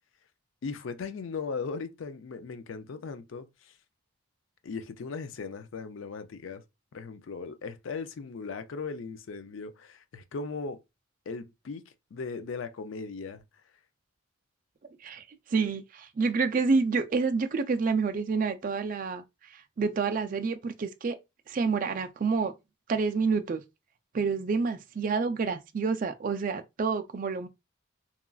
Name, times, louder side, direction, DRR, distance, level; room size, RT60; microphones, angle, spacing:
voice 1, 0.6-3.7 4.6-6.6 6.9-10.8 11.3-11.8 12.1-13.4, left 4 dB, 65° left, 0.4 m, -38 dB
voice 2, 15.0-19.2 19.5-21.2 21.5-22.5 22.9-23.6 24.1-27.5, right 4 dB, 40° right, 0.3 m, -28 dB
2.9 x 2.4 x 2.3 m
head